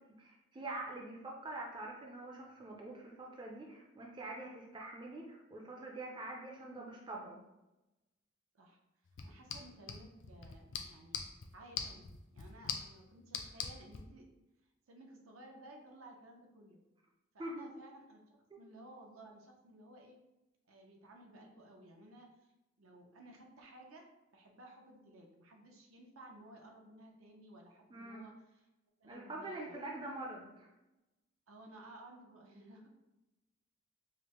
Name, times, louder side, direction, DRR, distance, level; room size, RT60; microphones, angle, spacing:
voice 1, 0.2-7.4 17.4-17.7 18.5-18.6 27.9-28.3 29.1-30.7, right 2 dB, 20° right, -1 dB, 0.4 m, -45 dB
sound 1, 9.1-14.0, left 6 dB, 65° left, 0.4 m, -44 dB
voice 2, 9.2-11.2 11.5-14.3 14.9-16.8 17.3-20.2 20.7-22.5 22.8-24.0 24.3-28.7 29.0-29.8 31.5-32.9, right 1 dB, 85° right, 1 dB, 0.7 m, -56 dB
5.0 x 2.1 x 2.9 m, 0.99 s
head